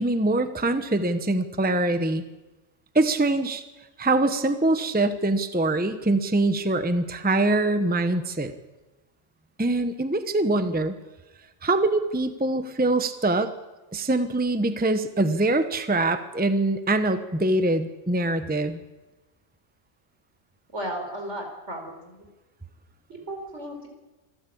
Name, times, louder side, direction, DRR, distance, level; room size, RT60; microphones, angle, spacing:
voice 1, 0.0-2.2 2.9-3.6 4.0-8.5 9.6-10.9 11.6-13.5 13.9-18.8, right 2 dB, 10° right, 9 dB, 1.0 m, -23 dB
voice 2, 20.7-22.3 23.1-23.9, right 1 dB, 70° right, 3 dB, 4.8 m, -35 dB
26.5 x 13.0 x 8.6 m, 1.1 s
omnidirectional pair, 1.2 m